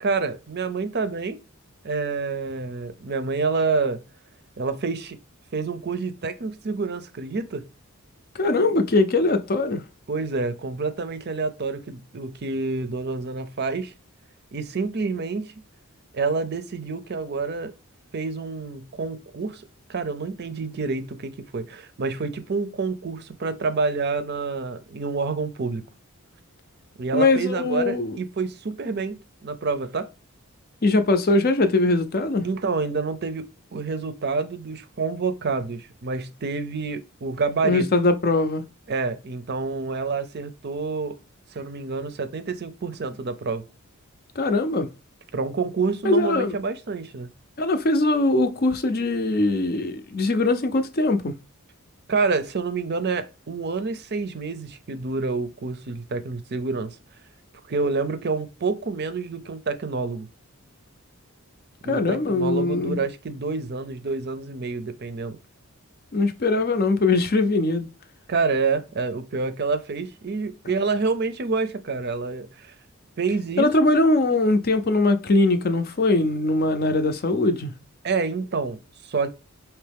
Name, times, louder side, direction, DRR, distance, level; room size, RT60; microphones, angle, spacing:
voice 1, 0.0-1.4 1.8-4.0 4.6-5.2 5.5-7.7 10.1-13.9 14.5-15.5 16.1-17.7 18.1-19.6 19.9-25.8 27.0-30.1 32.4-37.9 38.9-41.2 41.5-43.6 45.3-47.3 52.1-57.0 57.7-60.3 61.8-65.4 68.3-72.7 73.2-73.7 78.0-79.3, right 4 dB, 50° right, 0.6 m, -28 dB
voice 2, 8.4-9.8 27.1-28.2 30.8-32.5 37.6-38.6 44.4-44.9 46.0-46.5 47.6-51.3 61.9-63.0 66.1-67.9 73.6-77.7, left 2 dB, 45° left, 0.6 m, -21 dB
4.6 x 3.0 x 3.4 m
head